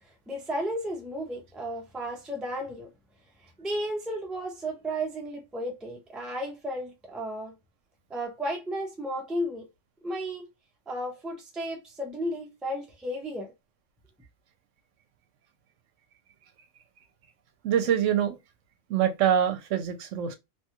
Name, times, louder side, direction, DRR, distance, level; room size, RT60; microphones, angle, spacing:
voice 1, 0.3-2.9 3.6-7.5 8.1-9.7 10.0-10.4 10.9-13.5, equal, ahead, 0.4 m, -33 dB
voice 2, 17.6-18.4 18.9-20.4, right 9 dB, 80° right, 0.9 m, -25 dB
2.9 x 2.3 x 2.9 m
omnidirectional pair, 1.3 m